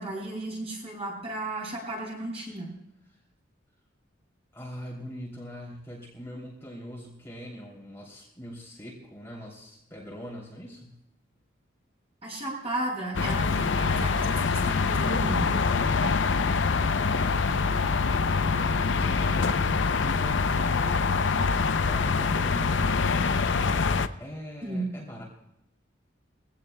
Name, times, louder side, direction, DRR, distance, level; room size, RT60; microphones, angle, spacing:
voice 1, 0.0-2.7 12.2-15.5 17.5-17.7 24.6-24.9, right 1 dB, 30° right, -3 dB, 7.1 m, -34 dB
voice 2, 4.5-11.0 15.9-16.4 18.5-19.6 19.9-23.4 23.7-25.2, equal, 15° left, -4 dB, 3.0 m, -42 dB
sound 1, 13.1-24.1, left 4 dB, 70° left, 0.6 m, -25 dB
23.0 x 17.0 x 2.3 m, 0.80 s
head